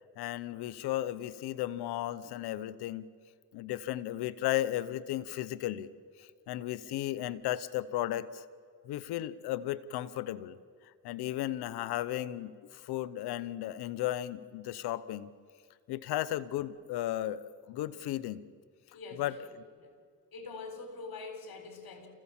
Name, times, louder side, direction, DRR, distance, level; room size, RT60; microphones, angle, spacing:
voice 1, 0.2-3.1 3.5-5.9 6.2-8.4 8.8-10.6 11.0-15.3 15.9-18.4 19.2-19.3, left 13 dB, 90° left, 16 dB, 0.9 m, -35 dB
voice 2, 18.9-19.4 19.8-19.9 20.3-22.1, left 4 dB, 65° left, 6 dB, 4.3 m, -44 dB
28.0 x 16.0 x 7.3 m, 2.2 s
cardioid pair, 65°, 38 cm